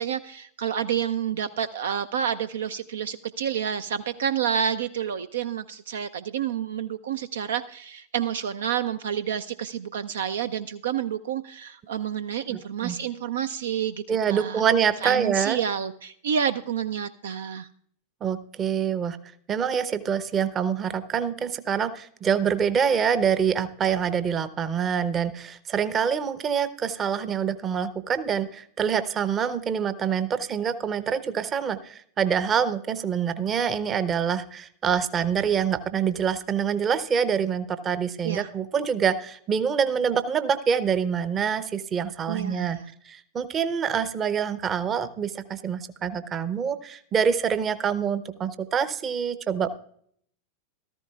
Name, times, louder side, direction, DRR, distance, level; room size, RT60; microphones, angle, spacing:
voice 1, 0.0-14.6 15.0-17.7 38.2-38.5 42.3-42.9, right 8 dB, 65° right, 12 dB, 0.4 m, -29 dB
voice 2, 12.5-12.9 14.1-15.6 18.2-19.2 19.5-42.8 43.1-49.7, right 7 dB, 25° right, 14 dB, 0.7 m, -26 dB
14.5 x 13.5 x 2.3 m, 0.63 s
figure-of-eight pair, 90°, 0 cm